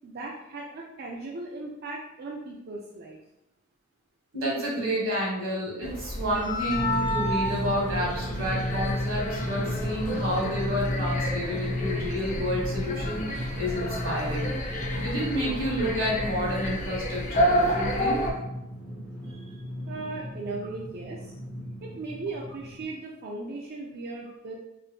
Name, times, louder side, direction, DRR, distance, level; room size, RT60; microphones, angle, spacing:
voice 1, 0.0-3.2 19.2-21.4 21.8-24.5, right 3 dB, 50° right, -2 dB, 0.4 m, -38 dB
voice 2, 4.3-18.2, equal, 75° right, -4 dB, 1.3 m, -30 dB
sound 1, 5.8-18.3, equal, 35° left, 0.5 m, -30 dB
Drum, 6.7-22.8, left 1 dB, 55° left, 1.2 m, -34 dB
4.1 x 2.6 x 2.2 m, 0.90 s
head